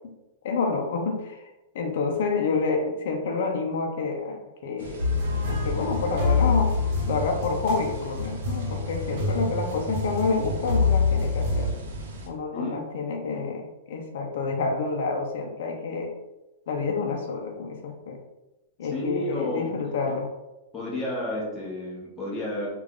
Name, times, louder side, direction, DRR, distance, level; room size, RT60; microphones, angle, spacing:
voice 1, 0.4-1.4 1.7-5.0 5.5-6.7 7.1-11.7 12.3-16.1 16.7-18.2 18.8-20.3, left 4 dB, 55° left, 1 dB, 0.6 m, -28 dB
sound 1, 4.8-12.3, right 2 dB, 85° right, 0.8 m, -38 dB
sound 2, 5.0-11.7, left 4 dB, 50° right, 1.0 m, -26 dB
voice 2, 18.8-20.0 20.7-22.8, left 1 dB, 10° left, -5 dB, 1.0 m, -31 dB
3.4 x 2.4 x 3.5 m, 1.0 s
supercardioid pair, 165°, 0 cm